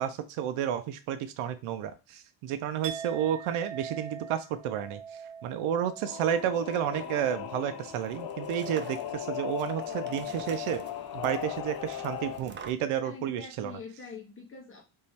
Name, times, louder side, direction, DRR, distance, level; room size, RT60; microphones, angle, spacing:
voice 1, 0.0-5.0 5.4-10.8 11.1-13.8, right 9 dB, 85° right, 10 dB, 0.7 m, -31 dB
Chink clink, 2.8-8.8 9.1-9.5, right 7 dB, 60° right, 1.1 m, -44 dB
Singing / Musical instrument, 6.0-12.4, left 10 dB, 50° left, 0.6 m, -37 dB
sound 1, 6.2-12.7, right 6 dB, 25° right, 0.3 m, -49 dB
voice 2, 13.0-14.8, left 5 dB, 25° left, -1 dB, 1.4 m, -44 dB
3.7 x 3.1 x 4.2 m, 0.30 s
cardioid pair, 160°, 48 cm